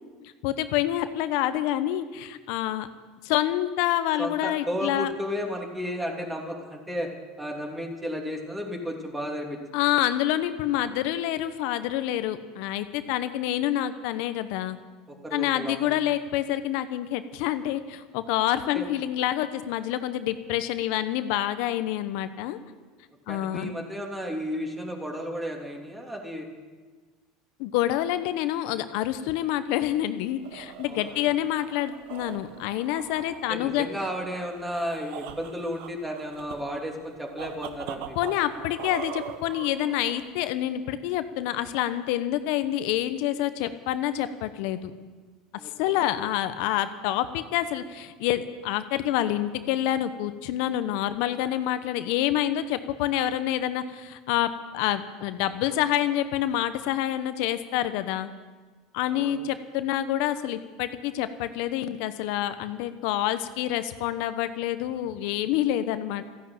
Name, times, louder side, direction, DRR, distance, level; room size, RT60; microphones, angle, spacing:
voice 1, 0.4-2.9 3.2-5.1 9.7-14.8 15.3-22.6 23.3-23.7 27.6-33.9 38.1-44.9 45.8-58.3 58.9-66.2, left 12 dB, 70° left, 11 dB, 0.9 m, -27 dB
voice 2, 4.2-7.1 7.4-9.6 15.2-15.8 18.7-18.9 23.3-26.5 30.9-31.3 33.5-38.2 45.5-46.0 59.1-59.3, equal, 10° right, 1 dB, 3.0 m, -33 dB
sound 1, 30.2-40.5, right 9 dB, 75° right, 1.1 m, -42 dB
14.5 x 10.5 x 8.8 m, 1.4 s
supercardioid pair, 110°, 0 cm